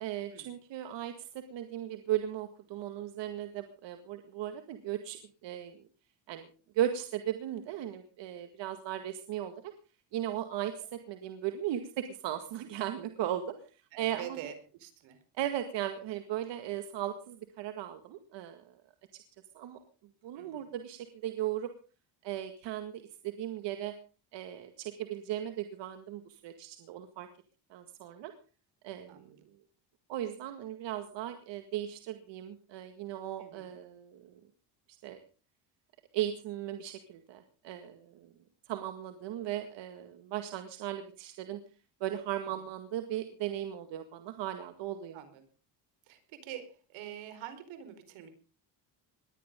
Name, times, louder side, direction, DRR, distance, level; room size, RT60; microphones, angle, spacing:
voice 1, 0.0-5.8 6.3-6.5 6.7-9.7 10.1-13.4 14.0-14.5 15.4-18.7 19.6-19.8 20.2-21.7 22.2-23.9 24.3-27.3 27.7-28.3 28.8-29.3 30.1-34.4 35.0-35.2 36.1-38.3 38.7-41.6 42.0-45.2, right 12 dB, 65° right, 8 dB, 2.1 m, -37 dB
voice 2, 13.9-15.2 20.3-20.7 29.1-29.3 33.4-33.7 45.1-45.4 46.1-48.3, right 10 dB, 85° right, 9 dB, 4.6 m, -46 dB
21.0 x 15.0 x 3.8 m, 0.37 s
cardioid pair, 125°, 46 cm